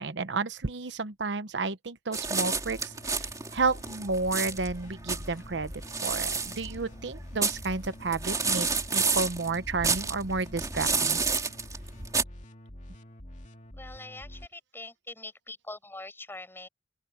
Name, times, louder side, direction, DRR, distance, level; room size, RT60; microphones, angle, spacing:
voice 1, 0.0-5.7 6.0-11.2, right 3 dB, 80° right, 0.9 m, -31 dB
sound 1, 2.1-12.2, right 4 dB, 20° right, 2.6 m, -30 dB
sound 2, 2.2-14.5, equal, 45° left, 2.4 m, -46 dB
voice 2, 13.8-16.7, left 2 dB, 15° left, 6.1 m, -43 dB
open air
head